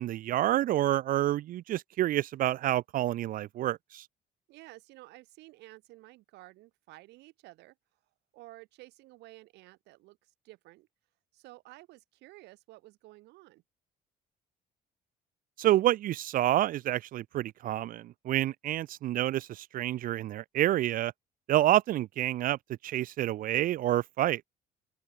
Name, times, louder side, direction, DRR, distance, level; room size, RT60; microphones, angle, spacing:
voice 1, 0.0-4.1 15.6-21.1 21.5-22.6 22.8-24.4, right 13 dB, 55° right, 0.4 m, -28 dB
voice 2, 4.5-7.8 8.3-10.9 11.3-13.6, right 19 dB, 90° right, 4.4 m, -53 dB
open air
cardioid pair, 110°, 17 cm